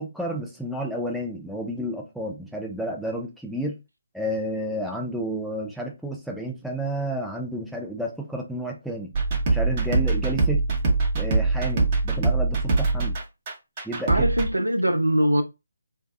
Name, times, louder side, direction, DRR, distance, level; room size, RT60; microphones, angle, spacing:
voice 1, 0.0-3.8 4.1-9.1 9.5-10.6 11.1-13.2 13.8-14.3, right 1 dB, ahead, 0.5 m, -31 dB
sound 1, 9.1-14.5, right 3 dB, 30° right, 0.8 m, -23 dB
voice 2, 14.1-15.4, equal, 85° right, 0.6 m, -22 dB
2.6 x 2.2 x 2.3 m
figure-of-eight pair, 150°, 0 cm